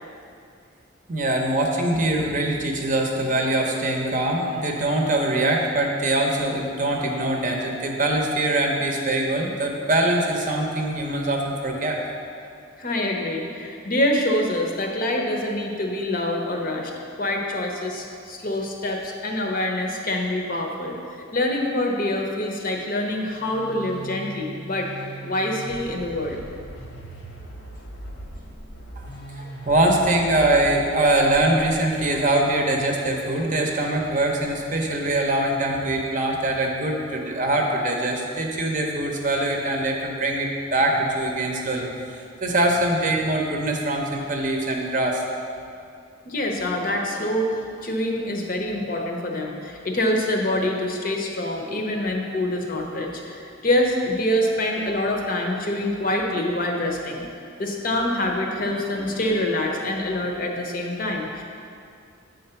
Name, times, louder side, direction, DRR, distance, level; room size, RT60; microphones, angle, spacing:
voice 1, 1.1-12.0 29.0-29.1 29.4-45.2, right 1 dB, 40° right, 1 dB, 0.7 m, -23 dB
voice 2, 12.8-16.9 17.2-21.0 21.3-24.9 25.2-26.4 46.2-57.3 57.6-61.4, left 1 dB, 45° left, 1 dB, 0.7 m, -25 dB
sound 1, 23.1-34.9, right 1 dB, 75° left, 1.0 m, -40 dB
7.6 x 3.9 x 5.6 m, 2.4 s
head